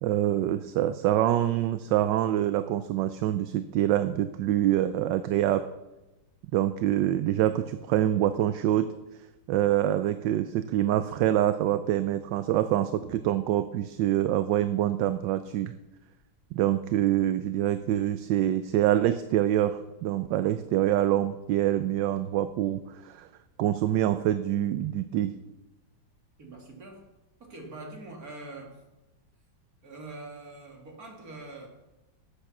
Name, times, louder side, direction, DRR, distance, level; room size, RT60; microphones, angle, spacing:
voice 1, 0.0-5.7 6.5-8.9 9.5-15.7 16.5-23.3 23.6-25.3, right 12 dB, 75° right, 12 dB, 1.2 m, -25 dB
voice 2, 26.4-27.0 27.4-28.8 29.8-31.7, right 2 dB, 50° right, 1 dB, 2.7 m, -43 dB
12.5 x 8.4 x 6.0 m, 1.0 s
omnidirectional pair, 2.1 m